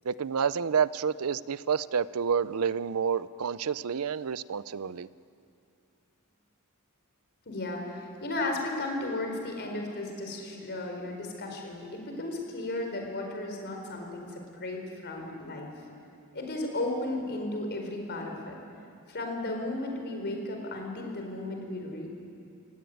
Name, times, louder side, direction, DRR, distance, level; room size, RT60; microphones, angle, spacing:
voice 1, 0.0-5.1, right 6 dB, 80° right, 17 dB, 0.6 m, -29 dB
voice 2, 7.5-15.7 16.3-18.5 19.1-22.2, left 2 dB, 50° left, 2 dB, 4.7 m, -35 dB
25.0 x 17.0 x 9.3 m, 2.5 s
head